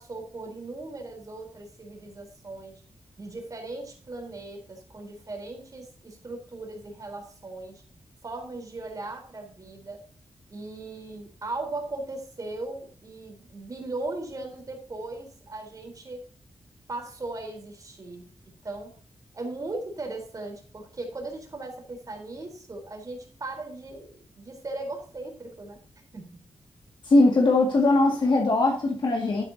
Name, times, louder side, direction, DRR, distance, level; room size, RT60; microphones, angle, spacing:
voice 1, 0.0-2.7 3.2-7.8 8.2-10.0 10.5-16.2 16.9-18.3 18.6-18.9 19.3-25.8 26.1-26.4, right 2 dB, 35° right, 3.9 m, -38 dB
voice 2, 27.0-29.4, left 2 dB, 50° left, 2.1 m, -20 dB
12.5 x 9.2 x 2.8 m
wide cardioid pair, 170°, 10 cm